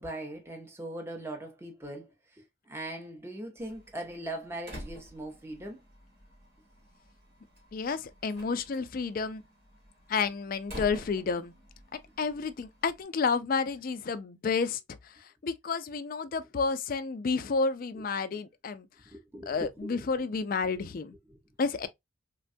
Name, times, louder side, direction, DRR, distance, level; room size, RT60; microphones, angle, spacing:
voice 1, 0.0-5.8 17.9-18.1 19.1-19.9 21.3-21.4, right 1 dB, 10° right, 0.6 m, -40 dB
Slam, 3.6-13.0, equal, 50° right, 1.1 m, -49 dB
voice 2, 7.7-9.4 10.1-11.5 11.9-15.1 15.4-18.9 19.5-21.1 21.6-21.9, left 4 dB, 45° left, 0.3 m, -30 dB
3.4 x 2.2 x 2.5 m
head